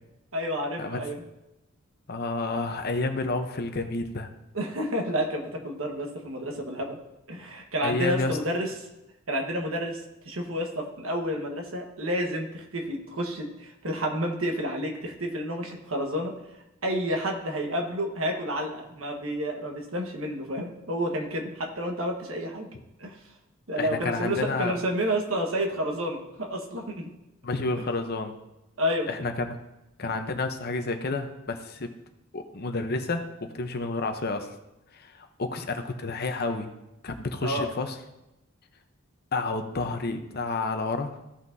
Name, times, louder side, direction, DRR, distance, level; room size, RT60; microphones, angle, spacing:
voice 1, 0.3-1.2 4.5-7.0 7.3-8.9 9.3-16.3 16.8-22.7 23.0-23.1 23.7-27.1 28.8-29.1 37.4-37.7, equal, 75° right, 2 dB, 1.4 m, -30 dB
voice 2, 2.1-4.3 7.8-8.4 23.8-24.8 27.4-28.3 29.1-29.6 30.0-31.9 32.3-33.3 33.5-34.5 34.9-36.7 37.0-37.9 39.3-41.1, left 3 dB, 50° left, 7 dB, 0.8 m, -30 dB
15.5 x 5.8 x 2.7 m, 0.94 s
head